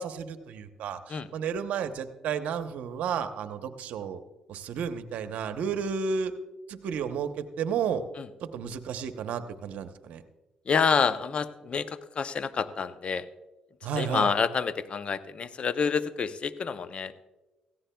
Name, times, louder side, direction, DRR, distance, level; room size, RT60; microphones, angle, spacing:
voice 1, 0.0-4.2 4.5-6.3 6.7-8.0 8.4-10.2 13.8-14.3, right 6 dB, 75° right, 9 dB, 0.8 m, -32 dB
voice 2, 10.7-13.3 14.0-17.1, left 6 dB, 50° left, 13 dB, 0.6 m, -28 dB
17.0 x 15.0 x 2.3 m, 1.1 s
supercardioid pair, 65°, 2 cm